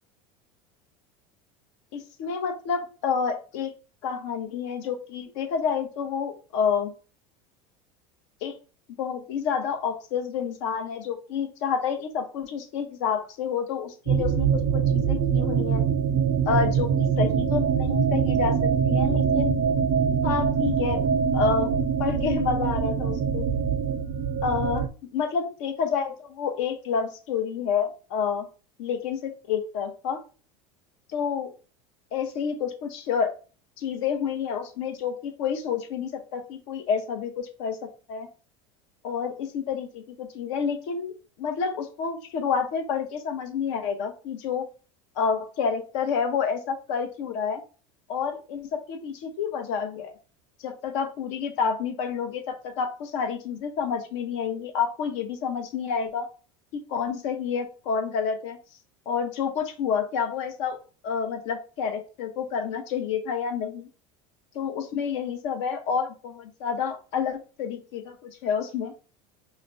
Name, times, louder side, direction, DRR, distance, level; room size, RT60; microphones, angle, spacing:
voice 1, 1.9-3.7 4.0-6.9 8.4-8.6 9.0-15.8 16.5-19.6 20.2-21.0 21.3-21.7 22.0-23.4 24.4-24.8 25.1-28.5 28.8-30.2 31.1-31.5 32.1-33.3 33.8-37.8 38.1-38.3 39.0-41.1 41.4-44.7 45.2-47.6 48.1-50.1 50.6-56.3 56.7-58.6 59.1-60.8 61.0-63.9 64.5-68.9, left 6 dB, 75° left, 6 dB, 0.8 m, -29 dB
sound 1, 14.1-24.9, right 7 dB, 50° right, 0.4 m, -24 dB
4.9 x 2.2 x 2.6 m, 0.35 s
supercardioid pair, 125°, 16 cm